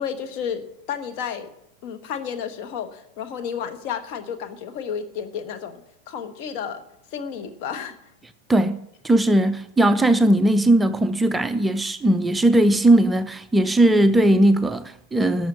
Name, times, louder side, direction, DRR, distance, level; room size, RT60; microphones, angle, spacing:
voice 1, 0.0-1.5 1.8-5.8 6.1-6.8 7.1-8.0, left 7 dB, 45° left, 1.2 m, -31 dB
voice 2, 8.5-15.5, right 1 dB, 10° right, 0.5 m, -18 dB
12.0 x 7.1 x 8.3 m
figure-of-eight pair, 90°, 0 cm